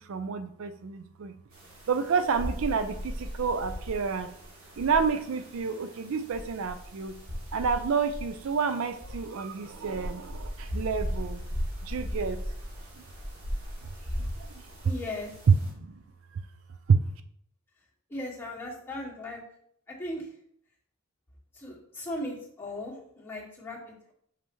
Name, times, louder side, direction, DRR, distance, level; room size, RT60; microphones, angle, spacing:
voice 1, 0.0-1.3 1.9-4.3 4.8-7.1 7.5-11.4 11.8-12.4 14.2-14.3 15.5-15.9 16.9-17.0, right 5 dB, 70° right, 10 dB, 0.4 m, -28 dB
sound 1, 1.5-15.7, equal, 85° right, 2.1 m, -38 dB
voice 2, 14.8-15.3 18.1-19.4 20.0-20.2 21.6-24.1, left 1 dB, 10° left, -5 dB, 1.8 m, -37 dB
6.3 x 5.4 x 3.1 m, 0.68 s
head